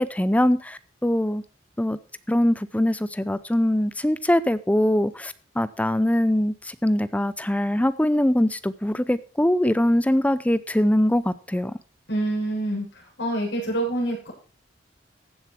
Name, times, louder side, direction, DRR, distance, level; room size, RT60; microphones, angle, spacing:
voice 1, 0.0-1.4 1.8-2.0 2.3-11.8, left 1 dB, 10° left, 15 dB, 0.6 m, -22 dB
voice 2, 12.1-12.9 13.2-14.3, right 1 dB, 70° left, -3 dB, 7.4 m, -26 dB
15.0 x 7.4 x 4.5 m, 0.36 s
head